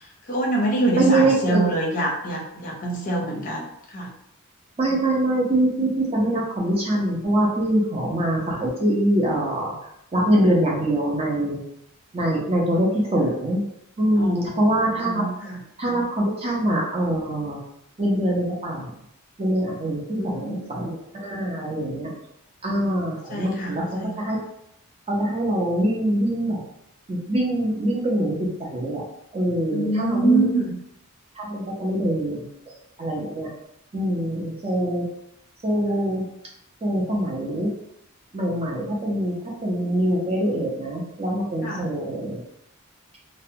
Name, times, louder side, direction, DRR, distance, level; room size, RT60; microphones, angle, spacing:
voice 1, 0.0-3.6 3.9-4.1 14.2-15.6 20.1-20.9 23.3-24.2 29.7-30.8 41.6-41.8, right 2 dB, 35° left, -2 dB, 0.6 m, -26 dB
voice 2, 0.9-1.6 4.8-9.7 10.1-11.6 12.1-13.6 14.0-15.3 15.8-17.6 18.0-18.9 19.4-22.1 22.6-23.8 24.2-24.4 25.1-26.6 27.1-28.3 28.6-29.0 29.3-30.5 31.4-32.4 33.0-33.5 33.9-35.0 35.6-36.2 36.8-37.7 38.3-39.3 39.6-42.4, right 1 dB, 25° right, -3 dB, 0.5 m, -23 dB
2.6 x 2.1 x 2.7 m, 0.76 s
head